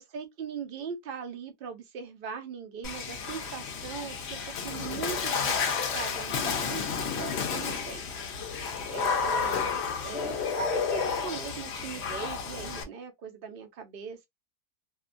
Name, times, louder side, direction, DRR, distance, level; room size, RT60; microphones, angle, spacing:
voice 1, 0.0-5.7 5.9-8.0 8.9-9.7 10.0-14.3, right 6 dB, 70° right, 0.5 m, -40 dB
Water / Splash splatter, 2.8-12.8, left 6 dB, 60° left, 0.7 m, -31 dB
2.7 x 2.2 x 2.5 m
omnidirectional pair, 1.6 m